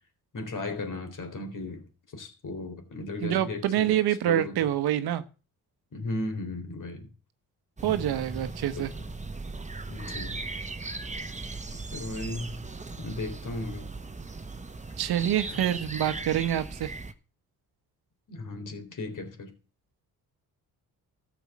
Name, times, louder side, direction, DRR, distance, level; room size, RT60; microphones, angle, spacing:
voice 1, 0.3-1.9 2.1-4.0 4.3-4.6 5.9-7.1 8.7-9.0 9.9-10.4 11.9-12.6 13.0-13.9 15.5-15.6 18.3-19.5, left 2 dB, 55° left, 3.9 m, -36 dB
voice 2, 3.2-5.2 7.8-8.9 15.0-16.9, right 11 dB, 75° right, 1.2 m, -26 dB
sound 1, 7.8-17.1, right 3 dB, 20° right, 1.3 m, -38 dB
13.5 x 7.2 x 7.3 m
supercardioid pair, 65°, 38 cm